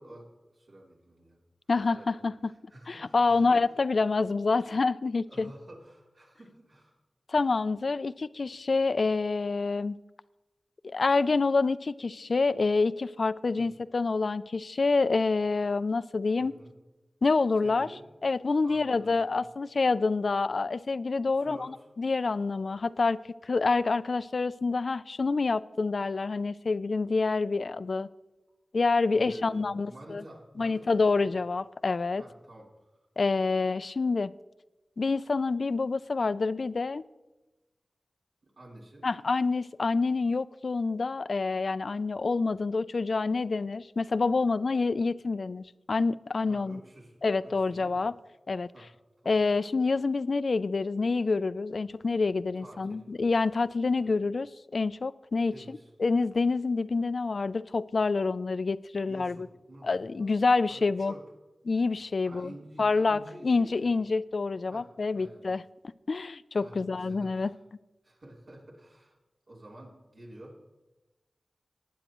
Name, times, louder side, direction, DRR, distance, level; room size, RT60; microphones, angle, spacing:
voice 1, 0.0-1.4 1.9-3.7 5.3-7.0 13.5-13.7 16.4-16.8 17.6-18.1 18.6-19.4 21.3-21.9 29.1-31.4 32.2-33.1 38.4-39.1 46.4-48.0 48.7-48.9 49.2-49.4 52.5-53.1 54.0-54.2 55.5-55.9 59.0-59.9 60.2-60.3 60.7-61.2 62.2-63.9 64.7-65.4 66.6-67.5 68.0-69.2 69.5-70.6, right 1 dB, 70° right, -3 dB, 3.4 m, -50 dB
voice 2, 1.7-2.3 2.9-5.5 7.3-10.0 10.8-16.5 17.2-17.9 18.2-28.1 28.7-30.2 30.6-32.2 33.2-34.3 35.0-37.0 39.0-46.8 47.2-48.1 48.5-48.7 49.3-54.5 54.7-59.4 59.8-61.1 61.7-62.5 62.8-65.6 66.1-67.5, left 4 dB, 65° left, 16 dB, 0.3 m, -27 dB
19.5 x 9.3 x 3.0 m, 1.1 s
wide cardioid pair, 70°, 0 cm